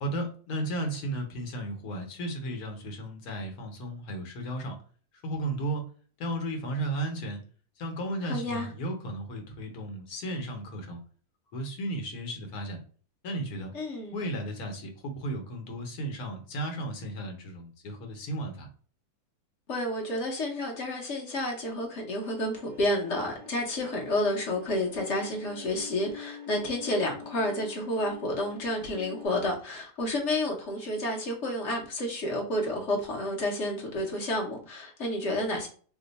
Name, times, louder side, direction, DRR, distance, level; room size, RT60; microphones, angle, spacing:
voice 1, 0.0-4.8 5.2-5.9 6.2-7.4 7.8-11.0 11.5-12.8 13.2-13.7 14.1-18.7, right 1 dB, 70° left, 1.3 m, -34 dB
voice 2, 8.2-8.7 13.7-14.2 19.7-35.7, left 1 dB, 55° left, 1.0 m, -30 dB
sound 1, 22.3-29.3, left 7 dB, 60° right, 0.5 m, -46 dB
3.0 x 2.1 x 3.9 m
omnidirectional pair, 1.7 m